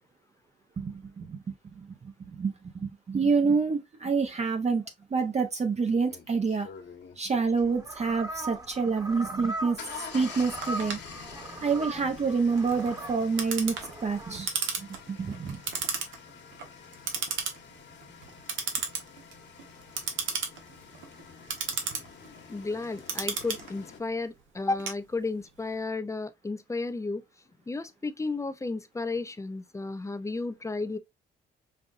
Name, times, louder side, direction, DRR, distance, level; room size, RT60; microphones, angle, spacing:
voice 1, 0.8-1.4 1.8-2.5 2.8-4.8 5.1-6.7 7.2-11.0 11.6-13.8 14.0-14.5 14.8-15.6, right 4 dB, 35° right, 0.7 m, -27 dB
sound 1, 5.4-5.5 6.1-7.9 9.3-24.0, left 6 dB, 65° left, 1.4 m, -47 dB
sound 2, 7.4-14.4, right 1 dB, 20° right, 1.2 m, -40 dB
Clock, 10.6-25.6, right 6 dB, 75° right, 1.2 m, -36 dB
voice 2, 22.5-27.2 27.7-31.0, left 3 dB, 15° left, 0.5 m, -33 dB
5.4 x 2.5 x 2.5 m
cardioid pair, 90°, 20 cm